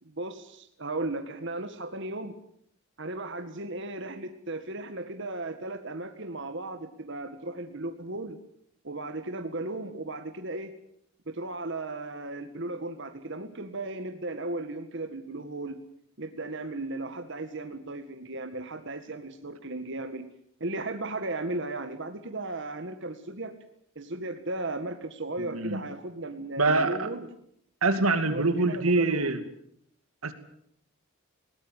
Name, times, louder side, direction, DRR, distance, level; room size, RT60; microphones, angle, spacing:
voice 1, 0.0-2.3 3.0-8.4 8.8-10.7 11.3-15.8 16.2-20.3 20.6-23.5 24.0-27.3 28.3-29.3, right 2 dB, 55° right, 7 dB, 1.9 m, -36 dB
voice 2, 26.6-27.1 27.8-29.4 30.2-30.3, right 3 dB, 85° right, 9 dB, 2.5 m, -24 dB
21.0 x 18.5 x 9.1 m, 0.70 s
head